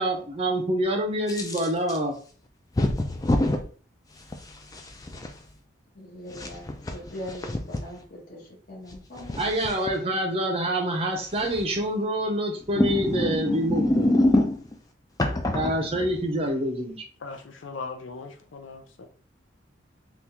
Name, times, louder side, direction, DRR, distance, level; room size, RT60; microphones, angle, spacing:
voice 1, 0.0-2.1 9.4-14.2 15.5-17.0, right 1 dB, 30° right, 0.5 m, -26 dB
sound 1, 1.3-2.0 2.8-3.6 4.3-5.3 6.3-7.8 8.9-9.9 11.4-11.8 12.6-14.8 15.2-16.3, left 1 dB, 20° left, 0.3 m, -26 dB
voice 2, 5.9-9.5, left 1 dB, 50° left, 1.2 m, -41 dB
voice 3, 17.2-19.1, left 4 dB, 85° left, 0.5 m, -39 dB
3.5 x 2.4 x 2.8 m
head